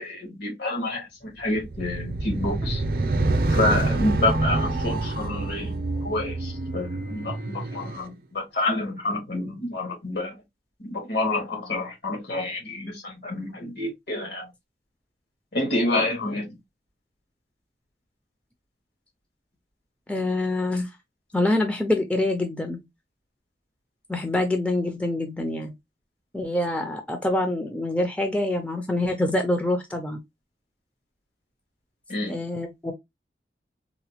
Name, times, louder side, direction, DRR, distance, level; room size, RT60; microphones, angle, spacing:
voice 1, 0.0-2.8 3.5-5.8 6.0-10.3 10.8-14.5 15.5-16.6 32.1-32.4, left 2 dB, 70° left, 1.6 m, -28 dB
sound 1, 1.5-8.0, right 2 dB, 55° right, 0.5 m, -27 dB
voice 2, 20.1-20.9 21.3-22.8 24.1-25.7 26.3-30.2 32.3-32.9, left 1 dB, 5° left, 0.4 m, -25 dB
4.0 x 2.1 x 2.8 m
head